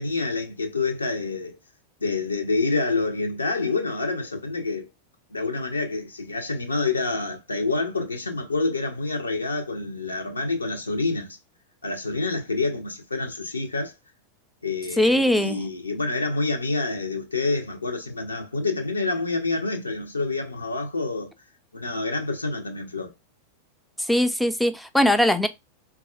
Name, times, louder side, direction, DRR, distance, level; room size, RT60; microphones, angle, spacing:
voice 1, 0.0-1.6 2.0-4.9 5.3-11.4 11.8-13.9 14.6-21.3 21.7-23.1, left 3 dB, 80° left, 0.6 m, -27 dB
voice 2, 15.0-15.6 24.1-25.5, left 1 dB, ahead, 0.4 m, -20 dB
4.0 x 2.3 x 2.3 m
figure-of-eight pair, 90°, 0 cm